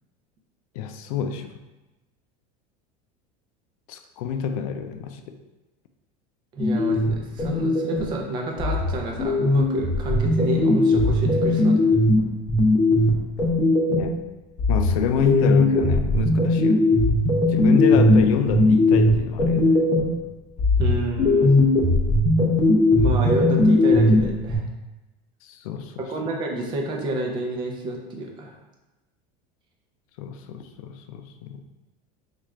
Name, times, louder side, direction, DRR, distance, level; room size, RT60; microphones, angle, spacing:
voice 1, 0.8-1.5 3.9-5.4 13.9-14.2 14.7-16.9 17.5-19.8 25.4-26.1 30.2-31.6, left 7 dB, 75° left, 7 dB, 0.4 m, -27 dB
voice 2, 6.5-11.9 20.8-21.5 23.0-24.6 26.0-28.6, right 1 dB, 25° right, 1 dB, 0.5 m, -29 dB
sound 1, 6.6-8.2 8.6-14.2 14.6-20.2 20.6-24.6, left 2 dB, 20° left, 0.6 m, -19 dB
4.5 x 2.5 x 3.1 m, 1.1 s
cardioid pair, 175°, 18 cm